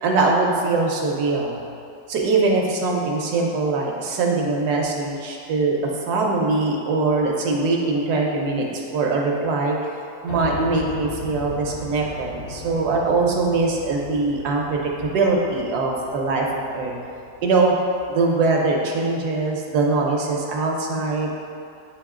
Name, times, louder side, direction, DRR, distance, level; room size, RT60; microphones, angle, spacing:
voice 1, 0.0-1.6 2.1-5.8 6.1-9.8 10.2-16.9 17.4-17.7 18.1-21.3, right 3 dB, 70° right, -1 dB, 1.3 m, -22 dB
Piano, 10.3-18.3, left 3 dB, 70° left, 0.6 m, -38 dB
9.0 x 3.0 x 3.6 m, 2.5 s
omnidirectional pair, 1.8 m